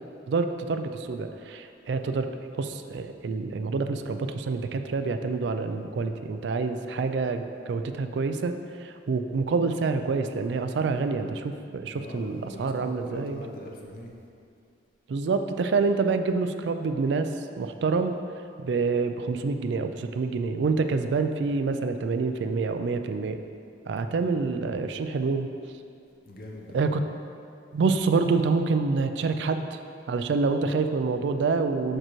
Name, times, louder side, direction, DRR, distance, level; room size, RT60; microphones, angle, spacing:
voice 1, 0.3-13.4 15.1-18.2 18.6-23.4 23.9-25.5 26.7-27.0 27.7-29.8 30.1-32.0, right 4 dB, 65° right, 8 dB, 0.3 m, -27 dB
voice 2, 11.9-14.1 24.0-24.3 26.2-26.8, equal, 50° left, 0 dB, 0.7 m, -42 dB
6.6 x 6.2 x 3.0 m, 2.5 s
head